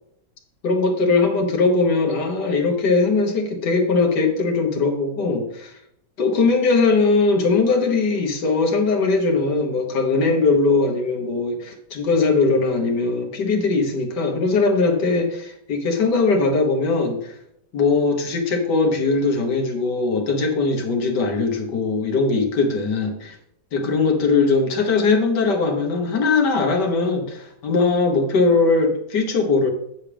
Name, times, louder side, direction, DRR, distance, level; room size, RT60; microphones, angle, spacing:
voice 1, 0.6-5.7 6.2-17.4 17.7-23.4 23.7-29.7, left 3 dB, 80° left, 2 dB, 1.9 m, -20 dB
8.5 x 7.4 x 3.4 m, 0.74 s
omnidirectional pair, 1.8 m